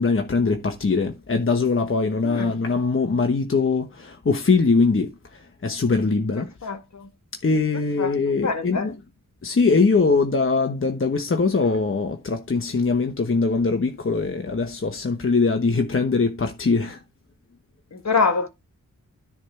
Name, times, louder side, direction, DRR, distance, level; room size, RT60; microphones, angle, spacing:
voice 1, 0.0-5.1 5.6-6.5 7.4-8.9 9.4-17.0, left 4 dB, 40° left, 1.2 m, -22 dB
voice 2, 2.2-2.6 6.4-7.1 7.7-8.2 8.4-8.9 17.9-18.5, left 4 dB, 55° left, 1.6 m, -26 dB
10.0 x 3.6 x 5.6 m
cardioid pair, 55°, 32 cm